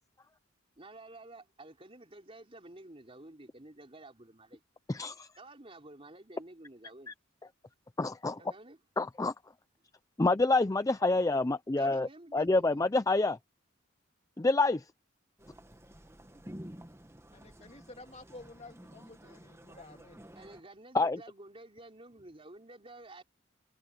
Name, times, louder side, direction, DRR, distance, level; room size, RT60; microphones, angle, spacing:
voice 1, 0.8-4.6 5.4-7.2 8.4-8.8 11.7-12.9 20.3-23.2, right 2 dB, 30° right, 3.8 m, -51 dB
voice 2, 4.9-5.3 8.0-8.4 9.0-9.3 10.2-13.4 14.4-14.8 20.9-21.2, left 2 dB, 15° left, 0.5 m, -27 dB
Street with people walking, 15.4-20.6, equal, 15° right, 1.4 m, -51 dB
voice 3, 17.3-20.3, left 2 dB, 35° left, 2.6 m, -51 dB
head